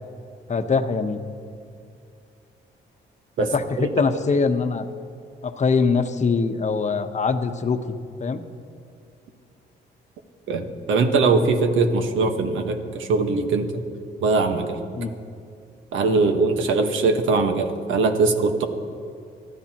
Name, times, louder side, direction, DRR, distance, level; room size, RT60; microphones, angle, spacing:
voice 1, 0.5-1.2 3.4-4.9 5.4-8.0 8.2-8.4 14.9-15.1 16.1-16.3, left 4 dB, 35° left, 8 dB, 1.0 m, -23 dB
voice 2, 3.4-3.9 10.5-13.8 14.2-14.8 15.9-18.7, right 3 dB, 80° right, 5 dB, 1.4 m, -21 dB
25.0 x 13.5 x 3.0 m, 2.4 s
cardioid pair, 90°, 20 cm